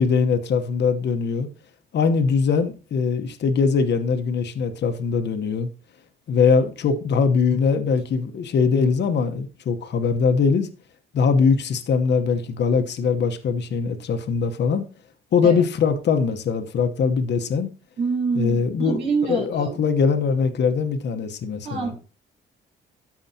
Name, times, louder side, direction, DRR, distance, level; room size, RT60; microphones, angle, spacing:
voice 1, 0.0-1.5 1.9-5.7 6.3-10.7 11.1-14.9 15.3-17.7 18.3-19.0 19.3-21.9, left 5 dB, 60° left, 1.1 m, -21 dB
voice 2, 18.0-19.8 21.6-22.0, right 4 dB, 60° right, 3.8 m, -26 dB
13.0 x 4.8 x 2.8 m
cardioid pair, 90°, 20 cm